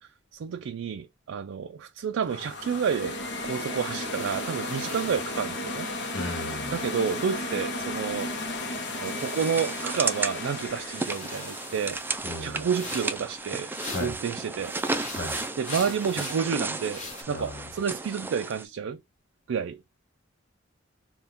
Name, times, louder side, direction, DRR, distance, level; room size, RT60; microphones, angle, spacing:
voice 1, 0.3-5.9 6.7-8.3 9.0-12.0 12.4-13.7 14.0-14.7 15.6-19.0 19.5-19.8, right 6 dB, 85° right, 0.4 m, -30 dB
sound 1, 2.2-13.2, left 2 dB, 60° left, 0.9 m, -35 dB
sound 2, 4.1-7.7 8.0-10.6 10.9-14.3 14.6-17.2, left 3 dB, 40° left, 1.6 m, -44 dB
voice 2, 6.1-6.7 12.2-12.6 13.9-14.1 15.1-15.3 17.3-17.5, left 1 dB, 80° left, 1.2 m, -34 dB
sound 3, 9.1-18.7, right 3 dB, 10° right, 0.3 m, -34 dB
3.5 x 2.3 x 4.0 m
head